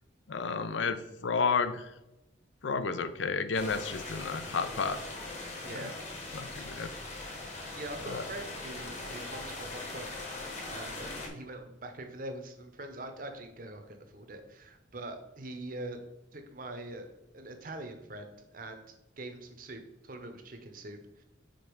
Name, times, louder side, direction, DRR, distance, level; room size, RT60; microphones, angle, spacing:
voice 1, 0.3-1.9 2.6-5.0 5.7-5.9 6.3-6.9 8.0-8.2, left 5 dB, 75° left, 12 dB, 0.5 m, -31 dB
sound 1, 3.5-11.3, left 2 dB, 35° left, 1.3 m, -41 dB
voice 2, 5.6-5.9 7.7-10.1 10.7-16.0 16.3-17.1 17.3-21.2, right 1 dB, 45° right, 6 dB, 0.8 m, -43 dB
5.2 x 4.6 x 4.6 m, 0.94 s
head